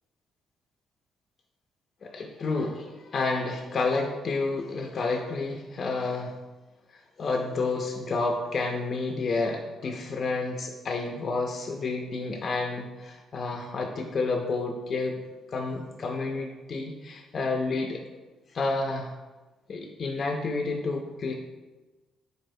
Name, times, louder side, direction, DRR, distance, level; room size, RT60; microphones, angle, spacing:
voice 1, 2.0-6.4 6.9-15.2 15.5-18.0 18.5-19.1 19.7-21.3, left 3 dB, 50° left, 1 dB, 0.4 m, -30 dB
3.9 x 3.1 x 2.6 m, 1.2 s
cardioid pair, 90°, 0 cm